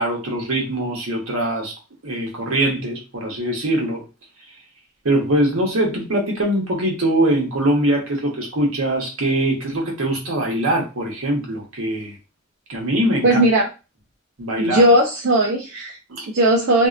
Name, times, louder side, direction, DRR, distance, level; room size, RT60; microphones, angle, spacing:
voice 1, 0.0-1.7 2.0-4.0 5.0-12.1 12.7-13.4 14.4-14.8 16.1-16.3, right 1 dB, 85° right, 1 dB, 0.9 m, -22 dB
voice 2, 13.2-13.7 14.6-16.0 16.3-16.9, right 1 dB, 70° right, -1 dB, 0.4 m, -17 dB
2.7 x 2.1 x 2.3 m, 0.29 s
head